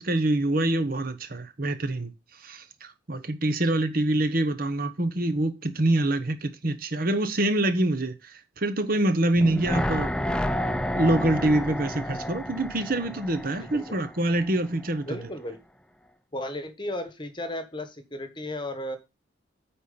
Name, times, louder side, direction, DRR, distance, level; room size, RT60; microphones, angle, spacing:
voice 1, 0.0-2.1 2.4-10.1 11.0-15.3, right 1 dB, 45° right, 1.1 m, -25 dB
sound 1, 9.4-14.5 14.8-14.9, equal, 5° left, 0.5 m, -30 dB
voice 2, 13.6-14.0 15.0-15.6 16.3-19.0, left 1 dB, 25° left, 1.2 m, -35 dB
9.1 x 4.4 x 6.7 m
head